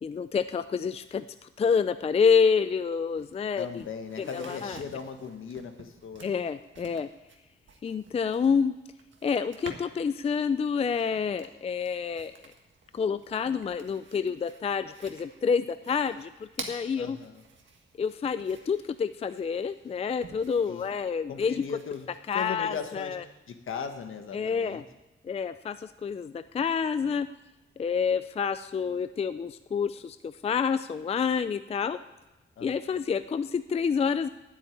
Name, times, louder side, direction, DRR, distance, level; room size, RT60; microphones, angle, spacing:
voice 1, 0.0-3.8 4.2-4.8 6.2-7.1 7.8-8.7 9.2-12.5 12.9-16.3 16.6-17.2 18.0-21.6 22.3-23.2 24.3-24.8 25.2-27.3 27.8-32.0 32.6-34.3, left 6 dB, 30° left, 12 dB, 0.4 m, -28 dB
sound 1, 2.7-2.8 3.0-10.1 10.5-22.4, right 4 dB, 65° right, 1.8 m, -50 dB
voice 2, 3.6-6.4 17.0-17.4 20.7-20.9 21.3-22.1 22.3-23.2 23.5-24.8 32.6-33.0, left 6 dB, 70° left, 6 dB, 1.4 m, -38 dB
10.0 x 8.5 x 9.4 m, 1.0 s
wide cardioid pair, 115°, 21 cm